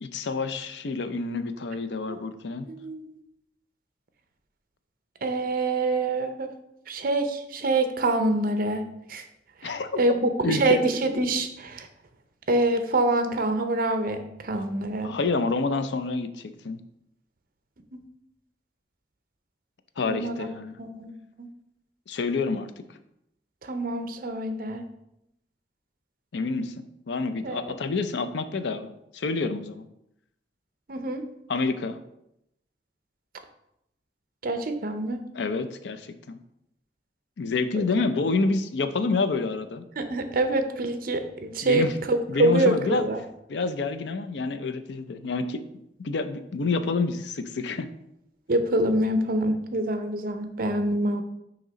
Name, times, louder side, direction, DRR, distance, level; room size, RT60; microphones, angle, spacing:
voice 1, 0.0-2.7 9.6-10.0 10.4-10.8 14.5-14.7 15.0-16.8 20.0-20.7 22.1-22.8 26.3-29.8 31.5-32.0 35.3-36.4 37.4-39.8 41.6-41.9 42.3-43.1 43.5-45.6 46.0-47.9, left 3 dB, 75° left, 10 dB, 0.5 m, -28 dB
voice 2, 2.7-3.0 5.2-6.5 6.9-9.2 9.6-11.9 12.5-15.1 20.0-20.5 20.8-21.1 21.4-21.5 23.6-24.8 27.4-27.6 30.9-31.2 34.4-35.2 40.0-43.2 48.5-51.2, right 2 dB, 55° right, 8 dB, 0.6 m, -26 dB
6.4 x 2.9 x 5.0 m, 0.81 s
head